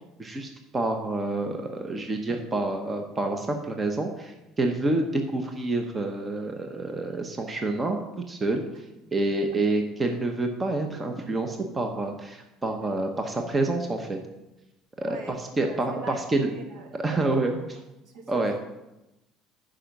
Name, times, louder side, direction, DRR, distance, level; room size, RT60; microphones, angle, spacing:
voice 1, 0.2-8.0 8.3-8.6 9.1-14.2 15.0-16.5 17.0-17.5 18.3-18.6, right 2 dB, 20° right, 4 dB, 1.0 m, -28 dB
voice 2, 15.0-15.3 15.6-17.3 18.0-18.6, right 5 dB, 70° right, 3 dB, 1.7 m, -41 dB
9.9 x 5.1 x 6.0 m, 0.97 s
cardioid pair, 110°, 0 cm